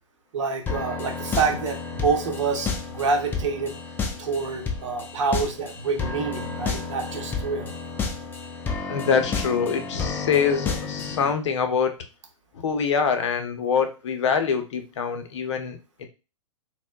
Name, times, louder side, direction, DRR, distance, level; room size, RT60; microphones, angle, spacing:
voice 1, 0.3-3.7 4.2-7.7, right 4 dB, 60° right, 5 dB, 0.8 m, -27 dB
sound 1, 0.7-11.3, left 5 dB, 10° left, 0.4 m, -31 dB
voice 2, 8.9-11.9 12.5-16.1, left 6 dB, 60° left, 7 dB, 0.6 m, -24 dB
4.1 x 2.1 x 2.3 m, 0.31 s
hypercardioid pair, 115°, 17 cm